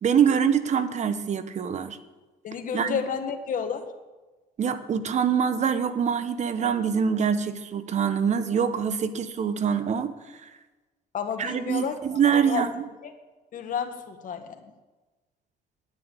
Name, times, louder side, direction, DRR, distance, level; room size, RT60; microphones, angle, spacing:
voice 1, 0.0-2.0 2.7-3.0 4.6-10.1 10.4-10.5 11.4-12.8, right 7 dB, 45° right, 11 dB, 1.1 m, -24 dB
voice 2, 2.4-3.9 11.1-12.6 13.0-13.1 13.5-14.6, left 7 dB, 50° left, 6 dB, 1.6 m, -31 dB
9.9 x 9.4 x 8.4 m, 1.2 s
cardioid pair, 110°, 17 cm